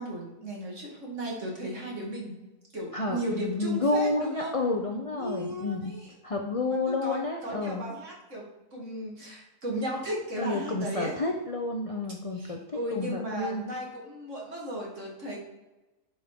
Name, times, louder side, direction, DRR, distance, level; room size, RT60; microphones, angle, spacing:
voice 1, 0.0-2.4 2.7-4.5 5.2-6.1 6.6-8.5 8.7-11.1 12.4-15.4, equal, 50° right, -3 dB, 2.5 m, -35 dB
voice 2, 2.9-5.9 6.2-7.9 10.4-12.6 12.9-13.6, left 2 dB, 40° left, 2 dB, 0.5 m, -30 dB
10.5 x 5.2 x 3.7 m, 1.1 s
omnidirectional pair, 1.7 m